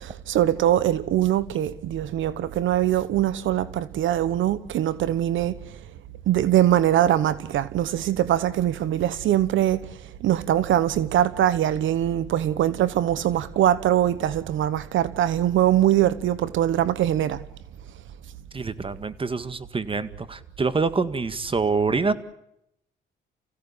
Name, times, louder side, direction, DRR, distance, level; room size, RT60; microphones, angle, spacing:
voice 1, 0.3-5.5 6.3-9.8 10.2-17.4, right 12 dB, 75° right, 1.1 m, -22 dB
voice 2, 18.5-22.1, right 4 dB, 25° right, 1.9 m, -26 dB
30.0 x 16.5 x 8.6 m
cardioid pair, 90°, 20 cm